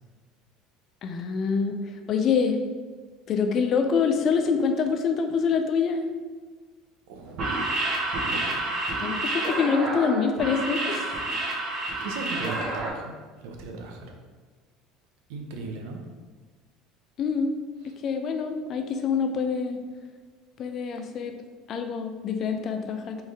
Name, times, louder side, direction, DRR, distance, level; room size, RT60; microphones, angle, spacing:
voice 1, 1.0-1.8 2.1-2.6 3.3-6.1 9.0-11.2 17.2-17.5 18.0-19.8 20.6-21.3 21.7-23.2, left 5 dB, 45° left, 6 dB, 0.5 m, -25 dB
voice 2, 7.1-7.8 8.3-8.6 12.0-14.1 15.3-16.0 17.8-17.9, right 3 dB, 80° right, 3 dB, 0.7 m, -38 dB
sound 1, 7.3-12.9, right 2 dB, 50° right, 1.3 m, -29 dB
4.3 x 3.3 x 3.6 m, 1.4 s
cardioid pair, 125°, 0 cm